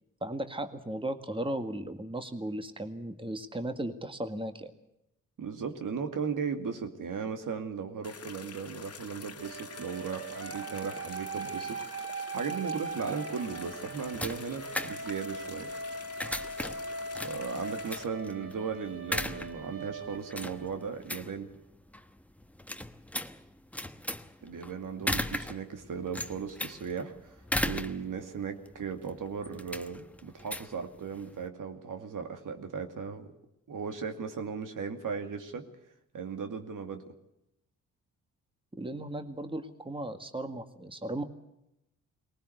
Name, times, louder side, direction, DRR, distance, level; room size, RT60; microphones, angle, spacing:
voice 1, 0.2-4.7 38.7-41.2, right 1 dB, 15° right, 8 dB, 1.8 m, -36 dB
voice 2, 5.4-15.7 17.2-21.5 24.4-27.4 27.6-33.3 33.7-35.7 36.1-37.0, right 6 dB, 60° right, 6 dB, 2.3 m, -37 dB
sound 1, 8.0-18.0, left 5 dB, 45° left, 1.9 m, -47 dB
sound 2, 9.4-21.2, right 3 dB, 40° right, 1.7 m, -40 dB
sound 3, 13.6-31.5, left 1 dB, 5° left, 1.2 m, -38 dB
19.5 x 19.0 x 8.0 m, 0.84 s
supercardioid pair, 55°, 35 cm